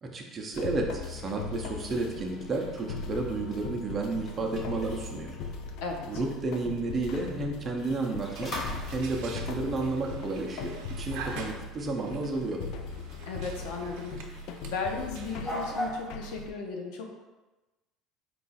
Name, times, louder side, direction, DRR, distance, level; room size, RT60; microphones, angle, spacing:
voice 1, 0.0-5.4 6.1-8.5 8.9-12.6, right 3 dB, 20° right, 1 dB, 0.5 m, -32 dB
sound 1, 0.5-16.5, left 4 dB, 60° left, 0.3 m, -39 dB
sound 2, 1.6-16.1, equal, 25° left, 0.8 m, -44 dB
voice 2, 5.8-6.2 13.3-14.4 14.7-17.1, left 4 dB, 80° left, 2 dB, 0.7 m, -36 dB
sound 3, 8.3-15.9, right 6 dB, 70° right, 0.5 m, -47 dB
4.6 x 2.4 x 4.0 m, 1.1 s
cardioid pair, 170°, 0 cm